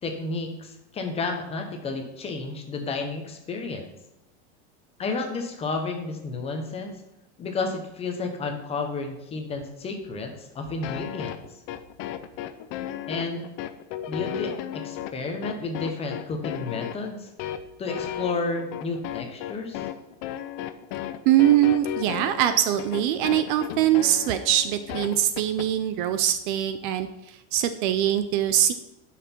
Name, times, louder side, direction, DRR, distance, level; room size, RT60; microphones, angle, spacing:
voice 1, 0.0-3.9 5.0-7.0 7.4-11.4 13.1-13.5 14.1-17.3 17.8-19.8, left 3 dB, 15° left, 4 dB, 1.0 m, -31 dB
sound 1, 10.8-25.7, left 11 dB, 35° left, 0.5 m, -34 dB
voice 2, 21.3-28.7, right 11 dB, 45° right, 10 dB, 0.5 m, -22 dB
11.0 x 5.9 x 4.4 m, 0.90 s
supercardioid pair, 170°, 35 cm